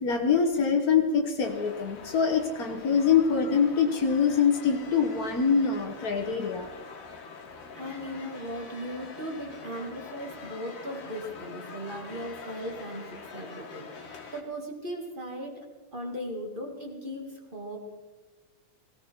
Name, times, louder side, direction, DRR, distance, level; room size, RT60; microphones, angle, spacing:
voice 1, 0.0-6.7, left 6 dB, 85° left, 3 dB, 0.8 m, -24 dB
sound 1, 1.4-14.4, left 4 dB, 50° left, 2.5 m, -45 dB
voice 2, 7.7-15.6 15.9-17.8, equal, 25° right, 1 dB, 1.3 m, -38 dB
17.5 x 17.5 x 4.5 m, 1.2 s
omnidirectional pair, 3.7 m